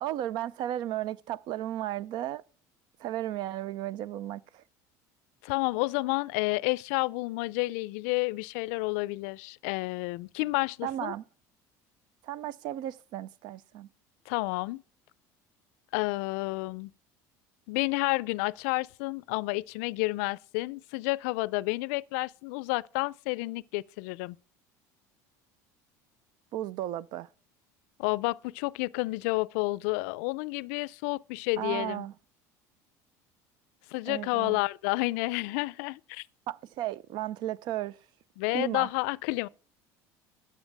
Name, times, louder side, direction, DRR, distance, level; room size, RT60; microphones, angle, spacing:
voice 1, 0.0-2.4 3.0-4.6 10.8-11.2 12.2-13.9 26.5-27.3 31.6-32.1 34.1-34.6 36.5-38.0 38.5-38.9, right 13 dB, 60° right, 0.5 m, -34 dB
voice 2, 5.4-11.1 14.3-14.8 15.9-16.9 17.7-24.4 28.0-32.0 33.9-36.3 38.4-39.5, left 23 dB, 80° left, 0.4 m, -30 dB
12.0 x 8.4 x 3.4 m
supercardioid pair, 95°, 8 cm